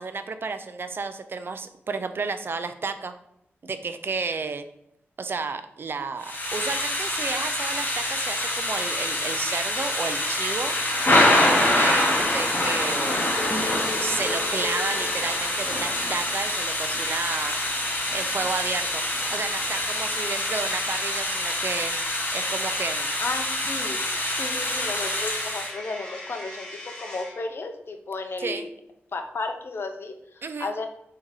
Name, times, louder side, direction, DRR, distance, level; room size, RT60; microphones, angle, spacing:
voice 1, 0.0-3.1 3.6-4.6 5.2-10.8 11.7-13.6 13.9-17.6 18.1-19.0 19.3-21.9 22.3-23.1 28.4-28.7 30.4-30.7, right 4 dB, 55° right, 9 dB, 0.4 m, -32 dB
Thunder / Rain, 6.2-25.7, left 1 dB, 45° left, 1.0 m, -25 dB
voice 2, 12.1-12.4 23.2-24.0 24.3-28.7 29.1-30.9, left 3 dB, 60° left, 6 dB, 0.6 m, -34 dB
sound 1, 13.1-16.4, left 2 dB, ahead, 0.7 m, -36 dB
Coin (dropping), 24.0-27.5, left 1 dB, 15° left, 1.5 m, -41 dB
3.7 x 2.8 x 4.6 m, 0.77 s
wide cardioid pair, 80°, 4 cm